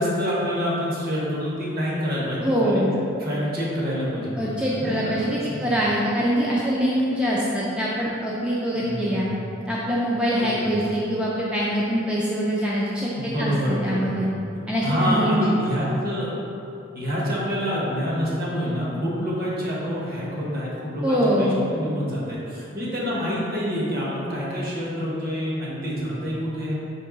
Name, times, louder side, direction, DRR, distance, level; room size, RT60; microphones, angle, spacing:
voice 1, 0.0-2.8 3.2-5.7 8.8-9.4 10.4-10.8 13.1-14.4 14.8-16.3 16.9-26.7, equal, 50° right, -6 dB, 1.1 m, -27 dB
voice 2, 2.4-2.9 4.4-9.2 9.7-14.3 14.7-15.5 21.0-21.6, equal, 5° right, -7 dB, 0.3 m, -24 dB
4.6 x 3.1 x 3.8 m, 2.6 s
head